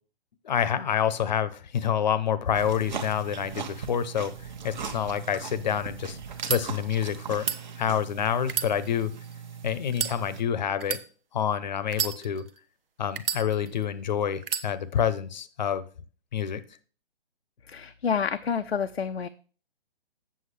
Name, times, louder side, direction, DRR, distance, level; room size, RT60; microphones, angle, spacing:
voice 1, 0.4-4.3 4.6-6.2 6.5-7.5 7.8-9.1 9.6-11.0 11.3-12.4 13.0-15.8 16.3-16.6, left 8 dB, 45° left, 16 dB, 0.7 m, -27 dB
sound 1, 2.5-10.4, right 6 dB, 50° right, 1.1 m, -39 dB
sound 2, 6.3-6.6 7.3-7.6 8.4-9.3 9.9-10.2 10.8-11.0 11.9-12.6 13.2-13.8 14.4-14.7, right 7 dB, 65° right, 0.8 m, -30 dB
voice 2, 17.7-19.3, left 6 dB, 85° left, 8 dB, 0.5 m, -28 dB
7.8 x 7.5 x 3.3 m, 0.39 s
figure-of-eight pair, 130°, 30 cm